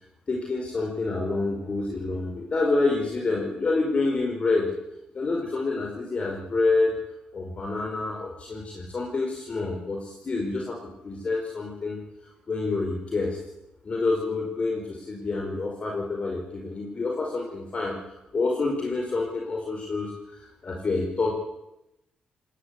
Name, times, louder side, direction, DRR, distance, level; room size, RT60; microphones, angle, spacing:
voice 1, 0.3-4.7 5.1-7.0 7.3-10.8 11.0-12.0 12.5-13.4 13.8-21.3, left 3 dB, 40° left, 0 dB, 4.9 m, -27 dB
20.0 x 18.0 x 8.3 m, 0.90 s
cardioid pair, 85°, 3 cm